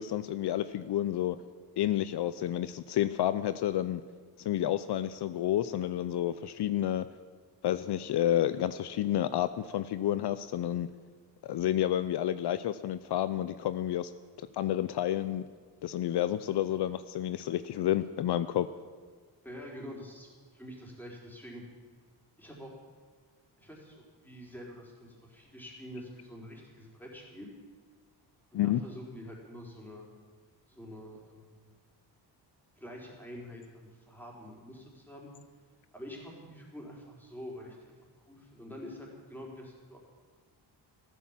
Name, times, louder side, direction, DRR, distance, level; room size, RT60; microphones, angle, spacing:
voice 1, 0.0-1.4 1.8-4.0 4.4-7.1 7.6-10.9 11.4-14.1 14.4-15.4 15.8-18.7 28.5-28.8, left 12 dB, 70° left, 13 dB, 0.6 m, -30 dB
voice 2, 19.4-20.3 20.5-21.6 22.4-22.7 23.6-27.5 28.5-30.1 30.7-31.6 32.8-35.3 35.9-37.9 38.3-40.0, equal, 5° left, -2 dB, 4.3 m, -46 dB
14.5 x 13.0 x 7.4 m, 1.5 s
cardioid pair, 120°, 42 cm